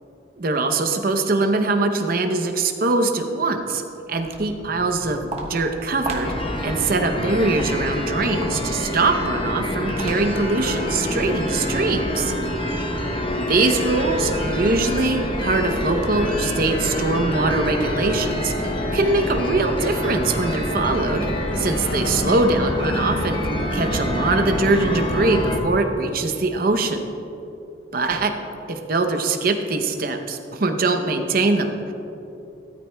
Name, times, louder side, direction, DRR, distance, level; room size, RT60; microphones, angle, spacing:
voice 1, 0.4-3.8 4.1-6.3 6.6-12.3 13.4-21.3 21.6-23.4 23.7-27.0 27.9-28.3 28.7-31.9, right 3 dB, 50° right, 5 dB, 0.7 m, -22 dB
Walk footsteps, 4.1-10.5, right 2 dB, 35° right, 1.1 m, -37 dB
sound 1, 6.2-25.6, left 1 dB, 25° left, 0.8 m, -26 dB
13.5 x 13.0 x 2.2 m, 2.8 s
head